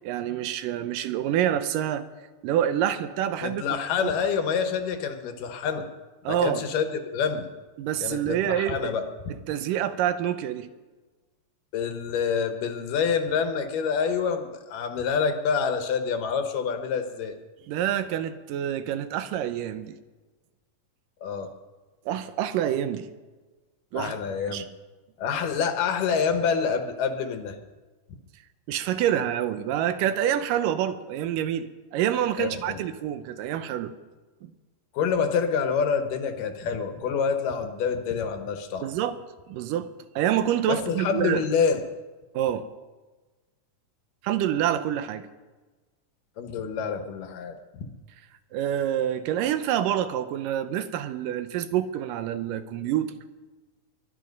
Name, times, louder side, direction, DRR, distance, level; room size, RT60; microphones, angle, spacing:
voice 1, 0.0-2.1 2.4-4.1 6.2-6.6 7.8-8.9 9.5-10.7 17.7-20.0 22.1-23.1 23.9-24.2 24.5-24.6 28.7-33.9 34.4-34.5 38.8-39.2 39.5-41.4 42.3-42.7 44.2-45.3 48.5-53.1, right 11 dB, 80° right, 2.5 m, -27 dB
voice 2, 3.4-5.9 6.3-7.5 8.0-9.0 11.7-17.4 21.2-21.5 23.9-24.6 25.2-27.6 32.4-32.8 34.9-38.9 40.7-41.8 46.4-47.9, left 6 dB, 75° left, 2.7 m, -27 dB
23.5 x 10.5 x 5.3 m
omnidirectional pair, 3.9 m